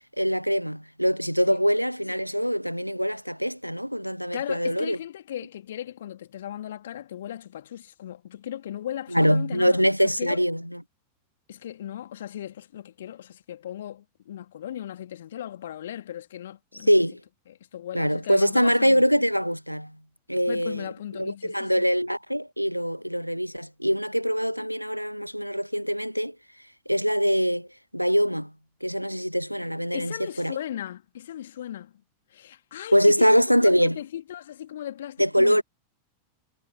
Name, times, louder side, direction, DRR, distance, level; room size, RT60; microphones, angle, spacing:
voice 1, 0.2-5.0 9.1-10.8 16.9-17.2 17.9-20.0 20.3-26.4 26.9-27.7 27.9-28.5 28.8-30.6 32.9-34.0 35.2-35.6, equal, 90° right, 0.5 m, -23 dB
voice 2, 4.3-9.8 10.2-10.4 11.5-16.9 17.5-19.2 20.5-21.9 29.9-32.0 32.3-33.3 33.6-35.6, left 11 dB, 60° left, 3.0 m, -37 dB
figure-of-eight pair, 90°, 0 cm